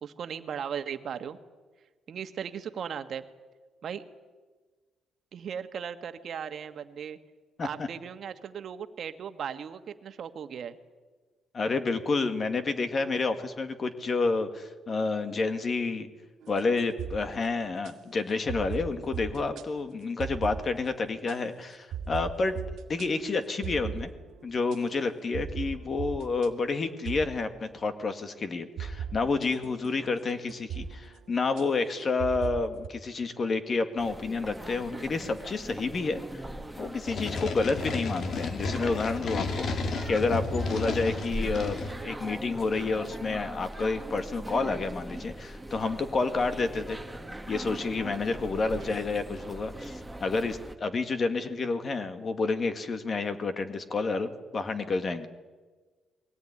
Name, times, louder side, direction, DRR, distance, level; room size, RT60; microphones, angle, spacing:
voice 1, 0.0-1.4 2.1-3.2 3.8-4.0 5.3-7.2 7.6-10.8 48.8-49.0, right 8 dB, 60° right, 8 dB, 1.6 m, -37 dB
voice 2, 11.5-16.1 16.5-22.6 22.9-24.1 24.4-36.4 36.8-47.0 47.5-55.3, left 3 dB, 40° left, 8 dB, 2.1 m, -29 dB
sound 1, 16.4-17.9 18.5-19.7 20.2-20.9 21.3-21.4 21.9-24.8 25.3-26.5 27.1-27.9 28.8-32.9, right 7 dB, 80° right, 1.9 m, -39 dB
sound 2, 34.0-50.7, right 1 dB, 5° right, 1.8 m, -41 dB
sound 3, 37.0-42.0, left 3 dB, 60° left, 2.1 m, -32 dB
21.5 x 17.5 x 9.8 m, 1.4 s
cardioid pair, 90°, 0 cm